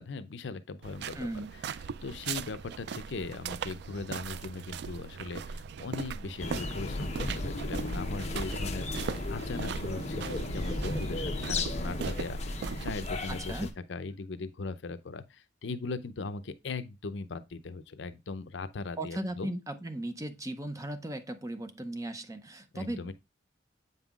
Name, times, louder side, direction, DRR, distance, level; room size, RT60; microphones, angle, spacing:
voice 1, 0.0-1.4 2.0-19.5 22.7-23.1, left 3 dB, 70° left, 0.6 m, -39 dB
sound 1, 0.8-13.1, right 6 dB, 60° right, 0.3 m, -40 dB
voice 2, 1.1-1.5 13.3-13.7 19.0-23.1, right 1 dB, 15° right, 0.6 m, -37 dB
sound 2, 6.4-13.7, left 2 dB, 35° left, 0.8 m, -34 dB
8.0 x 5.4 x 2.4 m
head